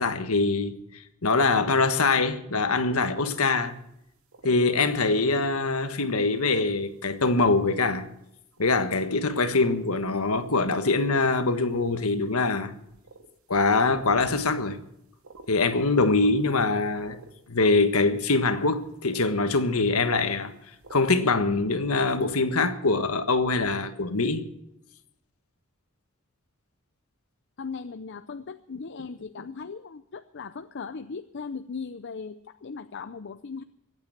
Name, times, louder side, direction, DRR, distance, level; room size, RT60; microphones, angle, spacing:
voice 1, 0.0-3.8 4.4-8.1 8.6-12.7 13.5-14.8 15.5-17.2 17.5-24.4, left 3 dB, 90° left, 1.5 m, -24 dB
sound 1, 3.6-3.7 4.1-4.6 5.1-5.3 5.9-6.0 6.9-7.0 7.5-7.6 8.2-8.3 8.5-8.9 9.4-9.9 10.3-11.3 11.7-12.3 12.8-13.3 13.5-13.9 14.4-14.9 15.1-15.8 16.1-17.4 17.6-20.5 20.8-21.1, right 3 dB, 75° right, 2.1 m, -49 dB
voice 2, 27.6-33.6, left 5 dB, 55° left, 0.6 m, -38 dB
23.5 x 8.9 x 5.8 m
head